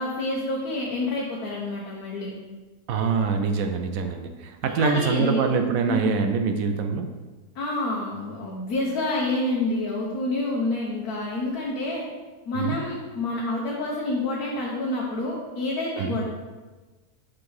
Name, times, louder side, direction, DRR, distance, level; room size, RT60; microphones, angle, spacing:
voice 1, 0.0-2.3 4.6-5.5 5.9-6.2 7.5-12.0 12.5-16.2, left 2 dB, 80° left, -4 dB, 1.5 m, -28 dB
voice 2, 2.9-7.1 12.5-12.8 16.0-16.2, right 5 dB, 70° right, 6 dB, 1.0 m, -25 dB
6.2 x 3.7 x 4.7 m, 1.3 s
omnidirectional pair, 1.6 m